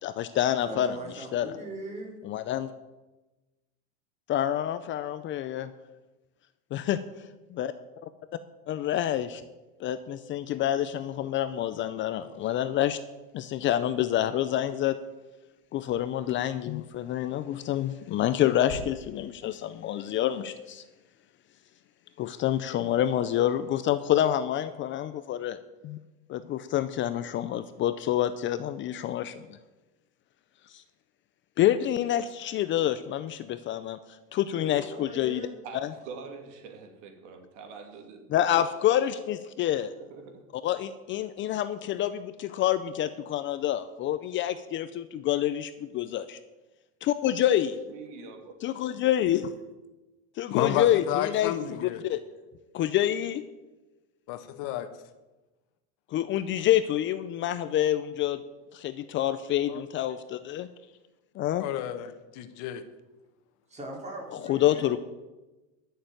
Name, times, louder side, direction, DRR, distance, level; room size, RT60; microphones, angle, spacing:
voice 1, 0.0-1.5 2.2-2.7 4.3-5.7 6.7-7.0 7.5-7.7 8.7-9.4 9.8-13.0 13.3-15.0 15.7-20.8 22.2-25.6 25.8-26.0 26.3-29.6 30.7-30.8 31.6-34.0 34.3-35.4 38.3-39.9 40.6-46.4 47.0-47.7 48.6-49.5 50.4-52.2 52.7-53.4 56.1-58.4 58.7-60.7 61.4-61.7 64.4-65.0, left 12 dB, 35° left, 12 dB, 0.6 m, -27 dB
voice 2, 0.6-2.2 34.5-35.6 63.7-65.0, right 1 dB, 20° right, 1 dB, 3.4 m, -40 dB
sound 1, 15.8-16.6 16.8-17.3 17.6-17.7 18.2-19.4 19.7-19.8 20.3-20.5, left 4 dB, 75° left, 2.1 m, -45 dB
voice 3, 35.6-38.7 39.0-39.1 39.9-40.4 47.5-47.6 47.9-48.5, right 5 dB, 80° right, 5 dB, 2.8 m, -45 dB
voice 4, 50.5-52.0 54.3-54.9 59.7-59.8 61.6-62.8, left 11 dB, 60° left, 10 dB, 1.3 m, -31 dB
11.5 x 6.7 x 9.2 m, 1.1 s
supercardioid pair, 145°, 35 cm